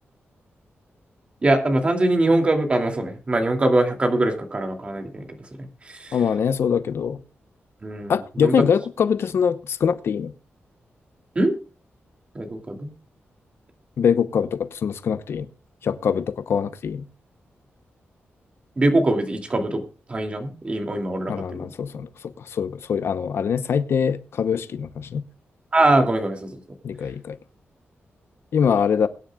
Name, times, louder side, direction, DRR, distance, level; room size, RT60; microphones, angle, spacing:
voice 1, 1.4-5.3 5.6-6.2 7.8-8.5 11.3-11.5 12.3-12.9 18.8-19.8 20.1-21.7 25.7-26.6, right 2 dB, 25° right, 2.6 m, -22 dB
voice 2, 6.1-7.2 8.1-10.3 14.0-15.5 15.8-17.0 21.3-22.1 22.5-25.2 26.8-27.4 28.5-29.1, left 7 dB, 65° left, 0.8 m, -23 dB
22.5 x 10.0 x 2.3 m
wide cardioid pair, 170°, 4 cm